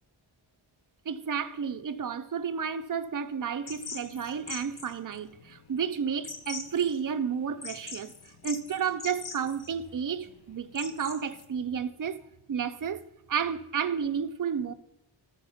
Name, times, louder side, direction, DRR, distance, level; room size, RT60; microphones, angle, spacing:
voice 1, 1.1-8.1 8.4-12.2 12.5-13.0 13.3-14.7, right 7 dB, 45° right, 0.6 m, -31 dB
sound 1, 3.7-11.4, left 5 dB, 55° left, 0.9 m, -43 dB
13.5 x 4.6 x 5.6 m
wide cardioid pair, 115°, 46 cm